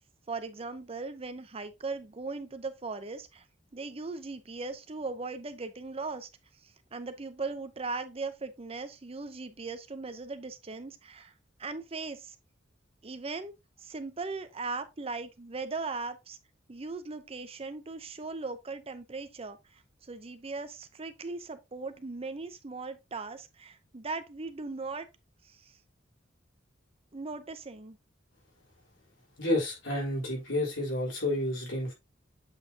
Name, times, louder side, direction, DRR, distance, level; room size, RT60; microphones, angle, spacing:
voice 1, 0.3-3.4 3.7-6.3 6.6-11.3 11.6-12.4 13.0-13.5 13.8-16.4 16.7-25.1 25.4-25.8 27.1-28.0, right 3 dB, 30° right, 0.6 m, -38 dB
voice 2, 29.4-31.9, left 1 dB, 80° left, 3.7 m, -30 dB
7.8 x 4.7 x 2.8 m
head